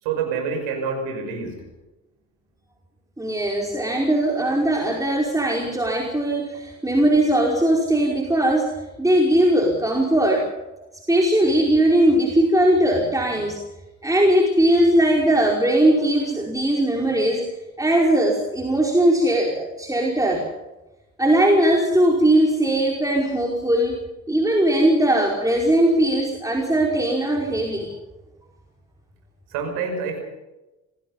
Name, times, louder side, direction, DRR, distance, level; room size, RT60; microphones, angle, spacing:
voice 1, 0.0-1.6 29.5-30.2, right 5 dB, 70° right, 3 dB, 5.8 m, -27 dB
voice 2, 3.2-10.5 11.1-13.6 14.0-17.5 17.8-20.4 21.2-24.0 24.3-27.9, right 1 dB, 10° right, -1 dB, 5.1 m, -19 dB
27.0 x 19.5 x 5.6 m, 1.0 s
figure-of-eight pair, 45°, 40 cm